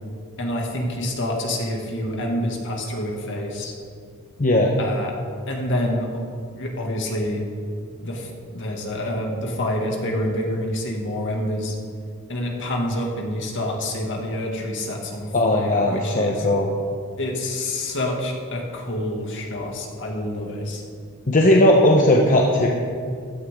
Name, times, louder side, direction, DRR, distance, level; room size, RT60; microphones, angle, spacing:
voice 1, 0.4-3.7 4.8-5.2 5.5-6.1 6.5-7.4 8.0-11.8 12.3-16.5 17.2-20.8, left 1 dB, 60° left, 0 dB, 2.4 m, -27 dB
voice 2, 4.4-4.7 15.3-16.7 21.3-22.7, left 1 dB, 35° left, 0 dB, 1.0 m, -17 dB
16.0 x 12.5 x 3.8 m, 2.2 s
head